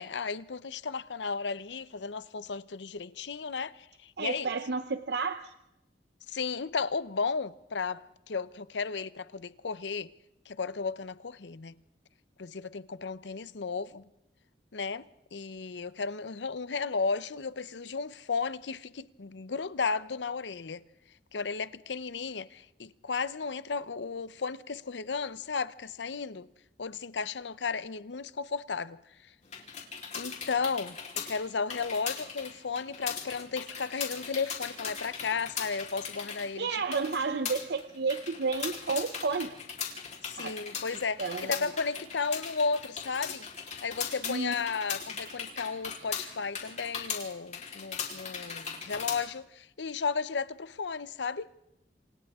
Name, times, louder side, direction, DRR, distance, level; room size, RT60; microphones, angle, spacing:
voice 1, 0.0-4.5 6.3-10.1 10.5-11.7 12.4-14.0 14.7-20.8 21.3-26.5 26.8-29.0 30.1-31.0 31.2-36.8 40.2-43.4 43.8-51.5, left 5 dB, 80° left, 0.7 m, -34 dB
voice 2, 4.2-5.5 36.6-39.5 40.4-40.5 41.2-41.5 44.2-44.5, right 4 dB, 65° right, 0.7 m, -31 dB
sound 1, 29.4-49.2, left 6 dB, 40° left, 3.8 m, -39 dB
27.5 x 27.5 x 3.6 m
head